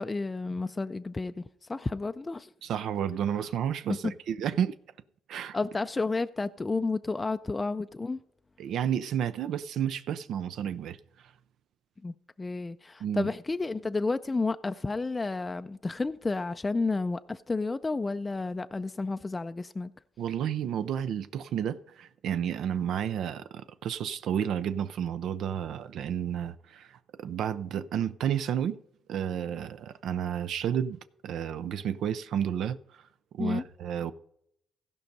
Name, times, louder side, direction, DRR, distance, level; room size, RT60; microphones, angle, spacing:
voice 1, 0.0-1.4 1.7-2.5 3.9-4.1 5.5-8.2 12.0-19.9 33.4-33.6, left 3 dB, 25° left, 0.3 m, -31 dB
voice 2, 2.6-4.8 5.3-5.6 8.6-11.3 13.0-13.3 20.2-28.8 29.1-33.0 33.3-34.1, right 9 dB, 75° right, 0.4 m, -31 dB
16.0 x 5.4 x 5.3 m
cardioid pair, 90°, 0 cm